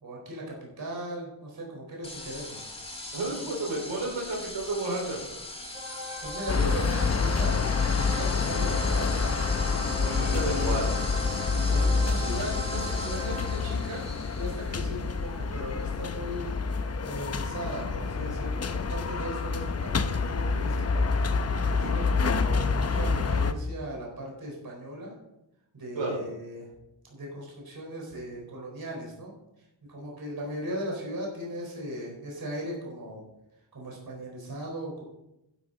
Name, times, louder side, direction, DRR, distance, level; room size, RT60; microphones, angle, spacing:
voice 1, 0.0-2.6 6.2-9.5 10.1-10.8 11.5-16.5 17.0-21.1 21.7-25.1 25.7-26.7 27.1-29.3 29.9-33.2 33.7-35.0, right 1 dB, 50° right, -2 dB, 4.2 m, -38 dB
sound 1, 2.0-15.9, left 2 dB, 15° left, 1.7 m, -40 dB
voice 2, 3.1-5.2 10.0-11.0 25.9-26.2, right 2 dB, 70° right, -2 dB, 4.3 m, -31 dB
sound 2, 5.7-14.0, equal, 20° right, 4.3 m, -39 dB
sound 3, 6.5-23.5, left 4 dB, 35° left, 0.7 m, -27 dB
11.5 x 11.0 x 3.8 m, 0.87 s
wide cardioid pair, 145°, 46 cm